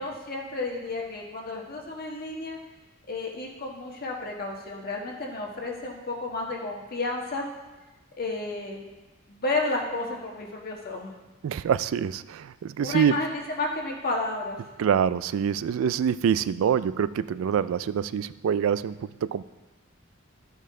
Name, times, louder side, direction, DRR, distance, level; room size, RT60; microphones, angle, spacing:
voice 1, 0.0-2.6 3.1-7.5 8.2-8.8 9.3-11.1 12.8-14.6, left 2 dB, 50° left, 0 dB, 1.4 m, -32 dB
voice 2, 11.4-13.1 14.8-19.4, right 8 dB, 80° right, 16 dB, 0.3 m, -25 dB
14.0 x 5.4 x 3.7 m, 1.1 s
head